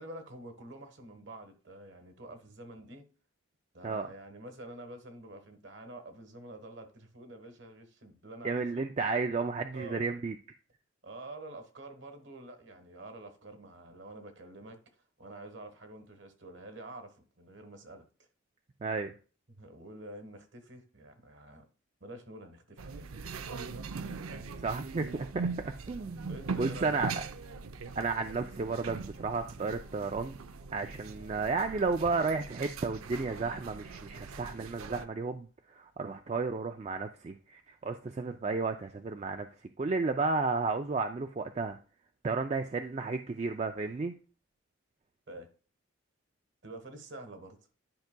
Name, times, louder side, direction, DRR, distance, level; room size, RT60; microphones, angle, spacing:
voice 1, 0.0-3.0 3.7-8.9 9.7-10.0 11.0-18.3 19.5-21.7 22.0-23.3 26.3-27.3 45.3-45.5 46.6-47.6, right 1 dB, 55° right, 1.3 m, -48 dB
voice 2, 8.4-10.3 18.8-19.1 24.6-27.2 28.0-30.4 30.7-39.5 39.8-41.8 42.2-44.1, right 4 dB, 30° right, 0.3 m, -33 dB
sound 1, 22.8-35.0, right 4 dB, 90° right, 0.6 m, -41 dB
10.5 x 5.7 x 2.2 m
head